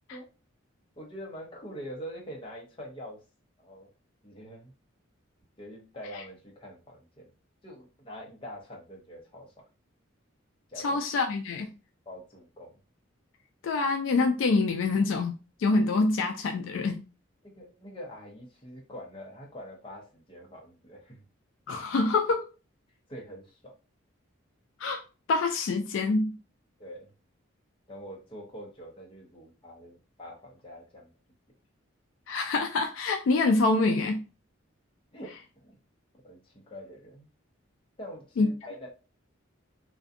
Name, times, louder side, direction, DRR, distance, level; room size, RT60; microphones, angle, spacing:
voice 1, 1.0-3.2 3.6-3.9 4.2-4.7 5.6-7.3 7.6-9.5 10.7-11.0 12.1-12.8 17.4-21.2 23.1-23.7 26.8-27.1 27.9-31.1 35.1-35.8 36.2-37.3 38.0-38.9, equal, 25° left, -2 dB, 0.7 m, -44 dB
voice 2, 10.8-11.7 13.6-17.0 21.7-22.5 24.8-25.0 25.3-26.3 32.3-34.2 38.4-38.5, left 3 dB, 70° left, 5 dB, 0.3 m, -26 dB
2.5 x 2.2 x 2.5 m, 0.32 s
head